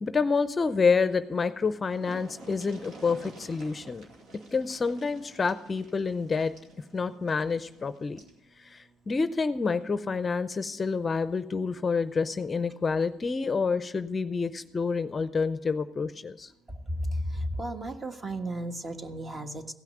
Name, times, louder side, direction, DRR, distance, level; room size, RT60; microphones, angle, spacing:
voice 1, 0.0-4.1 4.5-6.6 6.9-8.2 8.6-16.5, left 4 dB, 30° left, 13 dB, 0.6 m, -28 dB
sound 1, 1.3-1.4 1.6-8.4 9.7-9.8 10.2-10.3, right 2 dB, 65° right, 2.3 m, -50 dB
voice 2, 16.9-19.7, equal, 30° right, 7 dB, 1.4 m, -33 dB
16.0 x 5.8 x 9.1 m, 0.87 s
supercardioid pair, 85°, 0 cm